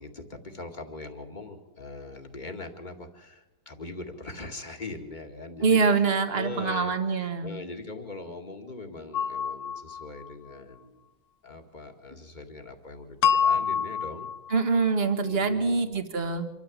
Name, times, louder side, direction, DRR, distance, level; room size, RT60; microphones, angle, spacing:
voice 1, 0.0-11.0 11.4-14.3 15.2-15.9, left 3 dB, 30° left, 4 dB, 2.3 m, -41 dB
voice 2, 5.6-7.5 14.5-16.5, right 4 dB, 40° right, 7 dB, 1.9 m, -24 dB
sound 1, 9.1-10.3 13.2-14.6, left 7 dB, 80° left, 1.5 m, -26 dB
26.0 x 13.5 x 7.5 m, 1.0 s
omnidirectional pair, 1.6 m